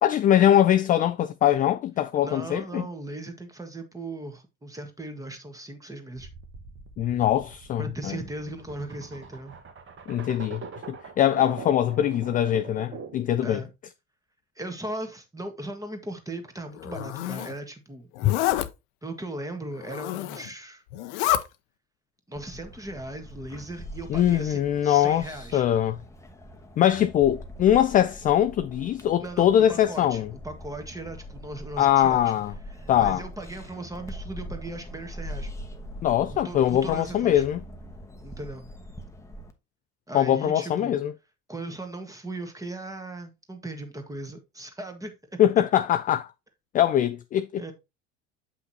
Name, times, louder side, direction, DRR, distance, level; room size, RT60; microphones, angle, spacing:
voice 1, 0.0-2.9 7.0-8.2 10.1-13.6 18.2-18.3 24.1-26.0 26.8-30.3 31.8-32.5 32.9-33.2 36.0-37.6 40.1-41.1 45.4-46.3 46.7-47.6, left 11 dB, 25° left, 0.3 m, -22 dB
voice 2, 2.2-6.3 7.8-9.6 13.4-13.7 14.5-18.1 19.0-20.8 22.3-25.6 29.2-32.3 32.8-35.5 36.3-37.4 38.2-38.7 40.1-41.0 41.5-45.1 47.6-47.7, right 2 dB, 10° right, 1.5 m, -38 dB
sound 1, 6.2-13.3, right 5 dB, 30° right, 1.2 m, -43 dB
Zipper (clothing), 16.8-17.5 18.2-18.7 19.8-20.5 20.9-21.4, left 13 dB, 60° left, 0.7 m, -28 dB
sound 2, 22.4-39.5, equal, 5° left, 1.1 m, -42 dB
8.3 x 5.6 x 2.8 m
figure-of-eight pair, 70°, 39 cm